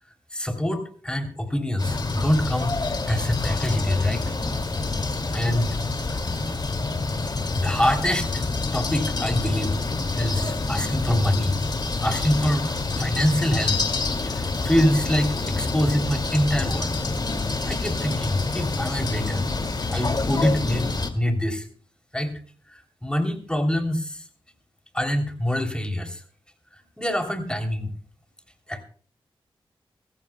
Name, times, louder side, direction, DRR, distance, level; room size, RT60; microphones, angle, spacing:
voice 1, 0.3-2.8 3.1-4.3 5.3-5.8 6.0-6.2 7.5-8.4 8.7-9.8 10.1-11.6 12.0-13.8 14.2-16.9 17.7-19.5 19.9-21.7 22.1-22.4 22.7-24.3 24.9-26.2 26.7-27.9 28.7-28.8, left 1 dB, 10° left, 5 dB, 3.2 m, -25 dB
sound 1, 1.8-21.1, left 3 dB, 45° left, 2.4 m, -27 dB
23.5 x 14.5 x 2.3 m, 0.43 s
cardioid pair, 50°, 10 cm